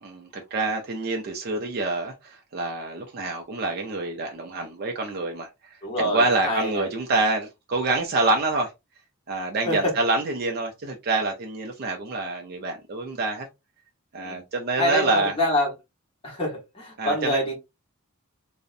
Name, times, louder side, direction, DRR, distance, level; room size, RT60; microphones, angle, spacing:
voice 1, 0.0-8.7 9.3-13.5 14.1-15.3 17.0-17.4, right 2 dB, 45° right, 0.4 m, -27 dB
voice 2, 5.8-6.9 9.6-9.9 14.2-14.4 14.8-15.7 16.2-17.5, left 1 dB, 25° left, 1.1 m, -26 dB
2.5 x 2.0 x 2.4 m
head